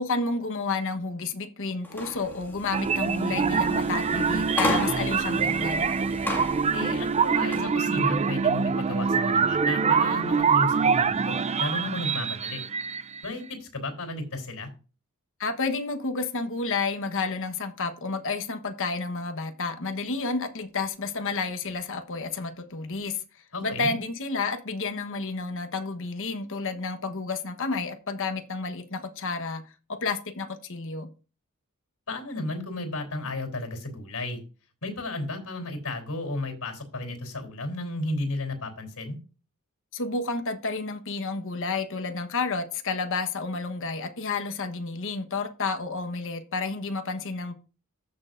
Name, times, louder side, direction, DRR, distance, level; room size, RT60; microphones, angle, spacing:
voice 1, 0.0-5.9 15.4-23.2 23.6-29.6 29.9-31.1 39.9-47.5, left 4 dB, 65° left, 1.2 m, -30 dB
sound 1, 1.8-7.7, left 1 dB, 10° left, 2.0 m, -34 dB
sound 2, 2.7-13.3, right 5 dB, 30° right, 0.4 m, -25 dB
voice 2, 6.7-12.6 13.2-14.7 23.5-23.9 32.1-34.4 34.8-39.2, left 2 dB, 85° left, 3.5 m, -33 dB
14.5 x 6.5 x 2.6 m
head